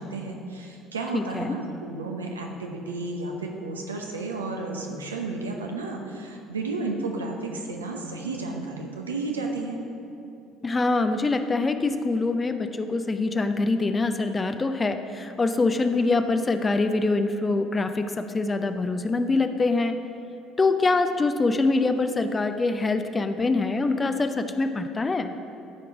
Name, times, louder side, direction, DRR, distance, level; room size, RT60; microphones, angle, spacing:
voice 1, 0.0-9.8, right 3 dB, 85° right, 1 dB, 0.8 m, -32 dB
voice 2, 1.1-1.6 10.6-20.0 20.6-25.3, left 3 dB, 25° left, 8 dB, 0.5 m, -24 dB
12.0 x 4.6 x 4.8 m, 2.8 s
figure-of-eight pair, 55°, 0 cm